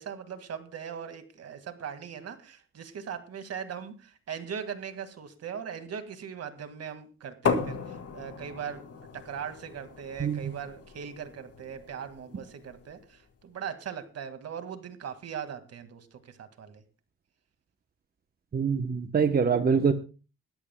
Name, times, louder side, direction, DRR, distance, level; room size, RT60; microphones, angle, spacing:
voice 1, 0.0-8.8 9.1-16.8, right 7 dB, 55° right, 9 dB, 2.0 m, -40 dB
sound 1, 7.5-13.1, left 5 dB, 55° left, 2.2 m, -36 dB
voice 2, 10.2-10.5 18.5-19.9, right 6 dB, 30° right, 8 dB, 0.9 m, -24 dB
21.0 x 13.0 x 2.2 m, 0.34 s
cardioid pair, 90°, 30 cm